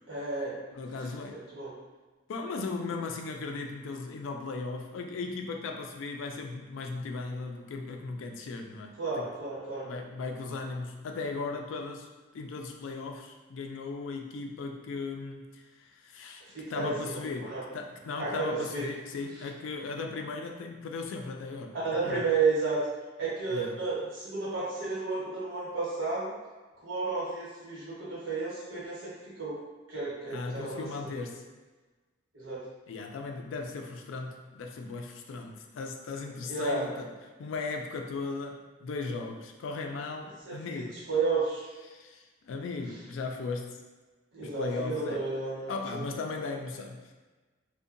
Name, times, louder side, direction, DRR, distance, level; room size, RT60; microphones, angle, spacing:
voice 1, 0.1-0.6 1.3-1.7 9.0-9.9 16.5-17.6 18.2-18.3 18.7-18.8 21.7-22.8 23.2-26.3 26.8-29.1 29.4-29.6 29.9-31.1 32.3-32.6 36.5-36.8 40.5-41.6 44.3-45.7, right 4 dB, 80° right, -7 dB, 1.0 m, -32 dB
voice 2, 0.7-1.4 2.3-9.3 9.8-16.4 16.7-21.8 22.0-22.2 23.5-23.8 30.3-31.4 32.9-37.1 37.4-41.0 41.9-43.8 44.4-45.3 45.7-47.1, left 3 dB, 85° left, 3 dB, 0.3 m, -37 dB
2.6 x 2.1 x 2.5 m, 1.3 s
head